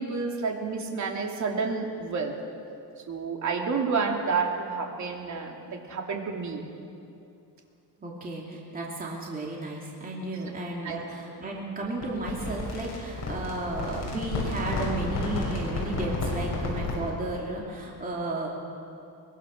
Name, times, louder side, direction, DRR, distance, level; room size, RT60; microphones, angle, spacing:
voice 1, 0.0-2.3 3.1-6.6 10.8-11.0, right 4 dB, 45° right, 1 dB, 2.9 m, -30 dB
voice 2, 8.0-18.5, right 2 dB, 20° right, -3 dB, 2.8 m, -33 dB
sound 1, 12.0-17.1, left 2 dB, 45° left, 6.5 m, -31 dB
23.0 x 21.5 x 6.5 m, 2.6 s
cardioid pair, 155°, 40 cm